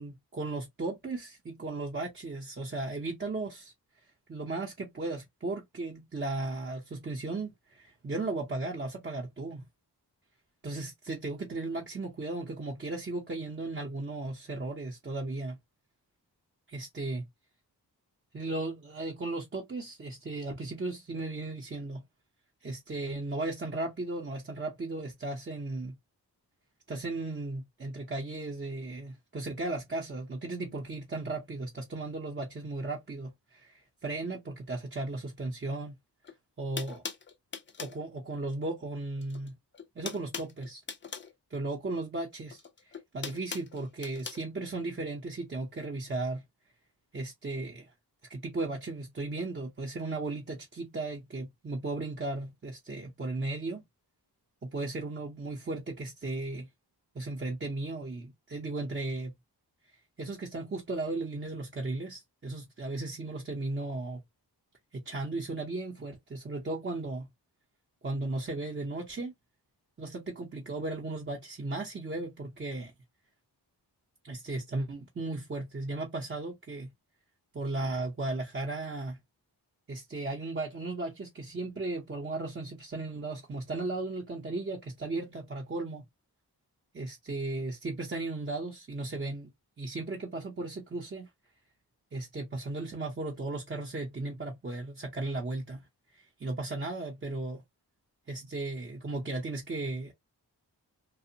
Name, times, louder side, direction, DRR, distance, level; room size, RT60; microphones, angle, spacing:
voice 1, 0.0-3.7 4.3-9.6 10.6-15.6 16.7-17.2 18.3-22.0 22.6-26.0 26.9-35.9 36.6-37.0 37.8-39.6 40.0-40.8 41.5-46.4 47.1-47.9 48.3-53.8 54.6-56.7 57.1-59.3 60.2-64.2 64.9-67.3 68.0-69.3 70.0-72.9 74.2-76.9 77.5-79.2 79.9-86.0 86.9-89.5 89.8-91.3 92.1-95.9 96.1-97.6 98.3-100.1, right 2 dB, 30° right, 0.6 m, -36 dB
sound 1, 36.2-36.3 36.8-38.0 39.2-39.5 39.7-41.3 42.5-44.4, left 5 dB, 30° left, 0.4 m, -40 dB
2.8 x 2.1 x 2.5 m
wide cardioid pair, 105°, 40 cm